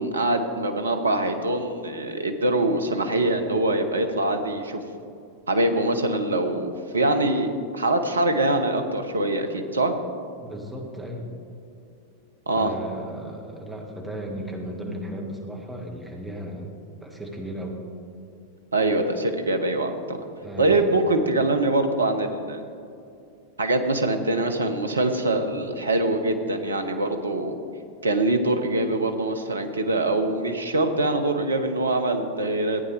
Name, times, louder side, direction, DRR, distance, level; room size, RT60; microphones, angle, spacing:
voice 1, 0.0-4.8 5.5-9.9 12.5-12.7 18.7-20.2 20.6-22.6 23.6-27.6 28.0-32.8, right 2 dB, 75° right, 7 dB, 0.8 m, -24 dB
voice 2, 10.4-11.3 12.5-16.7 17.0-17.8 20.4-20.9, right 1 dB, 5° right, 0 dB, 1.5 m, -35 dB
15.0 x 9.1 x 3.3 m, 2.5 s
figure-of-eight pair, 90°, 0 cm